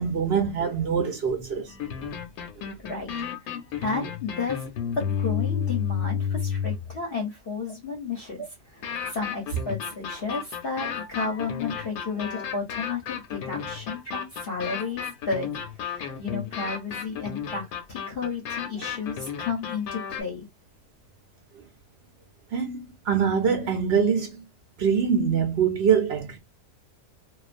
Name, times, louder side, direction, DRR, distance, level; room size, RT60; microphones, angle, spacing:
voice 1, 0.0-1.7 2.0-2.1 22.5-24.4 24.8-26.4, right 6 dB, 60° right, 0.7 m, -24 dB
sound 1, 1.7-7.0 8.8-20.2, left 8 dB, 80° left, 1.1 m, -32 dB
voice 2, 3.8-4.7 5.0-8.4 8.7-15.5 15.8-20.5, left 4 dB, 50° left, 0.8 m, -32 dB
2.3 x 2.3 x 2.4 m
omnidirectional pair, 1.5 m